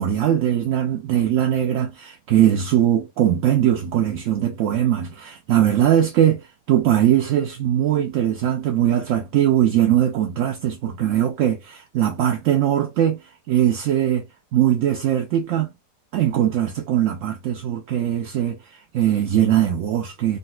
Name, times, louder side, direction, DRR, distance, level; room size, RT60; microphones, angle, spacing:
voice 1, 0.0-14.3 14.5-15.7 16.1-20.4, right 11 dB, 70° right, 0.7 m, -20 dB
3.8 x 2.3 x 2.3 m
omnidirectional pair, 1.7 m